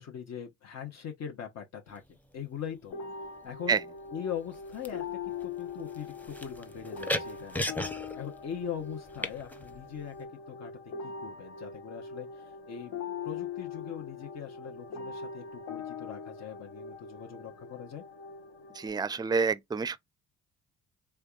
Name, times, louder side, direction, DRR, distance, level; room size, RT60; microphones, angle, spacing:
voice 1, 0.0-2.0 2.3-2.9 3.4-3.8 4.1-5.1 5.4-7.6 8.2-10.1 10.5-10.7 11.0-18.0, left 8 dB, 60° left, 1.0 m, -41 dB
sound 1, 1.9-2.3 3.2-3.8 4.0-10.2, left 1 dB, 5° left, 0.7 m, -38 dB
sound 2, 2.9-18.9, left 5 dB, 90° left, 1.3 m, -42 dB
voice 2, 18.7-20.0, right 5 dB, 15° right, 0.4 m, -28 dB
3.4 x 3.4 x 2.4 m
cardioid pair, 90°, 30 cm